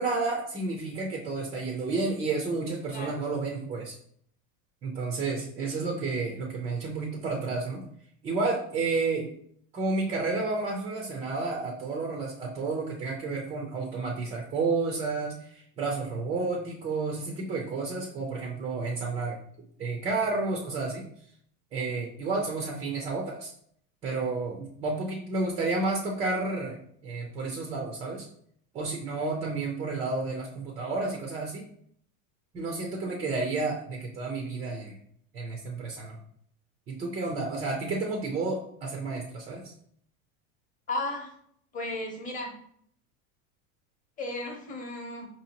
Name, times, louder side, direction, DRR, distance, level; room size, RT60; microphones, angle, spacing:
voice 1, 0.0-4.0 4.8-7.8 8.2-9.3 9.7-19.4 19.8-21.0 21.7-23.5 24.0-26.8 27.0-28.3 28.7-31.6 32.5-34.9 35.3-36.2 36.9-39.6, right 3 dB, 15° right, 0 dB, 0.3 m, -31 dB
voice 2, 40.9-41.3 41.7-42.5 44.2-45.3, left 2 dB, 20° left, 2 dB, 0.7 m, -34 dB
4.9 x 2.7 x 2.8 m, 0.65 s
supercardioid pair, 145°, 41 cm